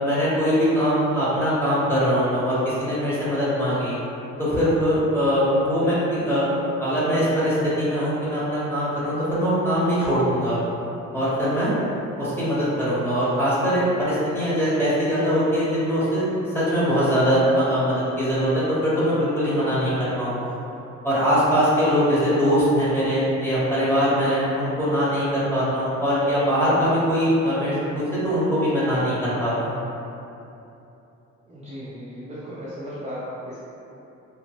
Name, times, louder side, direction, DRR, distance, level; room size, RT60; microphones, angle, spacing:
voice 1, 0.0-4.0 4.4-6.4 6.8-10.6 11.1-11.7 12.2-16.3 16.5-20.5 21.0-29.8, equal, 10° left, -10 dB, 1.0 m, -22 dB
voice 2, 31.5-33.6, equal, 20° right, -11 dB, 0.6 m, -36 dB
2.9 x 2.0 x 2.9 m, 2.9 s
cardioid pair, 90°, 30 cm